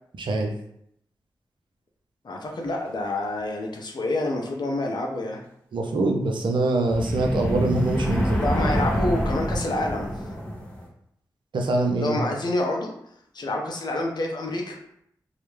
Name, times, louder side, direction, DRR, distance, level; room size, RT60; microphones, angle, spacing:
voice 1, 0.2-0.5 5.7-8.4 11.5-12.2, right 2 dB, 70° right, 2 dB, 0.5 m, -24 dB
voice 2, 2.2-5.4 8.4-10.1 12.0-12.9 13.3-14.8, left 2 dB, 60° left, 1 dB, 0.6 m, -28 dB
sound 1, 6.9-10.9, equal, 15° left, 0.9 m, -26 dB
2.3 x 2.0 x 3.1 m, 0.73 s
cardioid pair, 45°, 8 cm